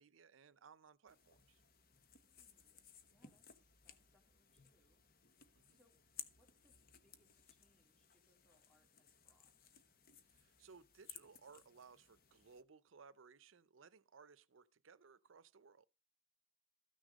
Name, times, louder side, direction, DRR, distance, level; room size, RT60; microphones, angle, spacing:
voice 1, 0.0-1.6 5.6-5.8 10.3-15.9, right 5 dB, 90° right, 0.6 m, -62 dB
sound 1, 1.1-12.6, left 8 dB, 45° left, 1.0 m, -60 dB
voice 2, 2.1-5.3 5.7-6.0 6.3-9.5, equal, 5° left, 2.8 m, -78 dB
14.0 x 6.4 x 5.1 m
head